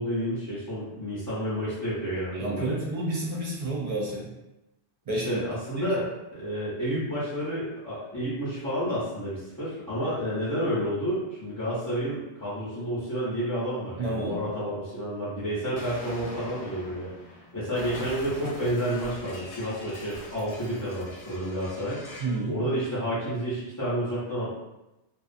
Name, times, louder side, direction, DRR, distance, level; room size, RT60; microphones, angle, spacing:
voice 1, 0.0-2.8 5.1-17.1 17.5-22.2 22.5-24.6, equal, 20° left, -11 dB, 0.5 m, -30 dB
voice 2, 2.4-4.3 5.1-5.4 5.8-5.9 14.0-14.4 22.2-22.6, right 1 dB, 60° right, -4 dB, 0.4 m, -30 dB
Explosion, 15.7-22.4, left 2 dB, 85° left, 0.9 m, -42 dB
2.4 x 2.3 x 2.5 m, 0.96 s
omnidirectional pair, 1.1 m